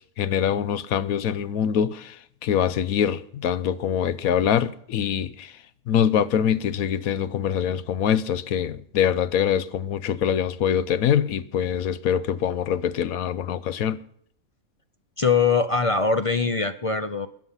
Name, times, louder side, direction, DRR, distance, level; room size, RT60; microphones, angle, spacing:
voice 1, 0.0-5.5 5.9-14.0, left 9 dB, 75° left, 1.2 m, -24 dB
voice 2, 15.2-17.3, left 5 dB, 45° left, 0.4 m, -22 dB
21.0 x 7.2 x 5.7 m
omnidirectional pair, 1.5 m